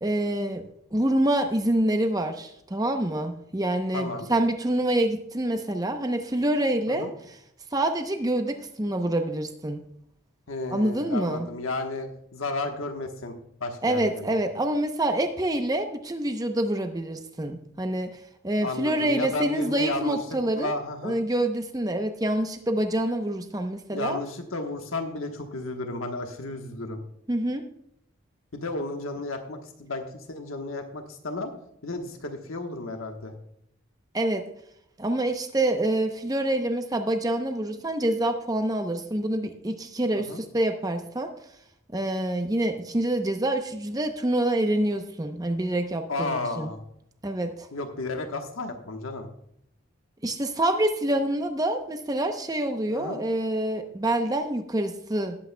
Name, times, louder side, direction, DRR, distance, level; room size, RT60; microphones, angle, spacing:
voice 1, 0.0-0.6 0.9-7.1 7.7-9.8 10.7-11.5 13.8-20.8 21.0-24.2 27.3-27.6 34.1-34.4 35.0-41.3 41.9-46.7 47.2-47.7 50.2-55.4, right 1 dB, 20° right, 6 dB, 0.7 m, -26 dB
voice 2, 3.9-4.3 6.9-7.1 10.5-13.3 13.6-14.3 18.6-20.2 20.5-21.2 23.9-27.0 28.5-31.5 31.8-33.3 40.1-40.4 46.1-46.8 47.7-49.3 52.9-53.2, left 2 dB, 90° left, 4 dB, 1.2 m, -33 dB
18.5 x 8.4 x 2.2 m, 0.74 s
head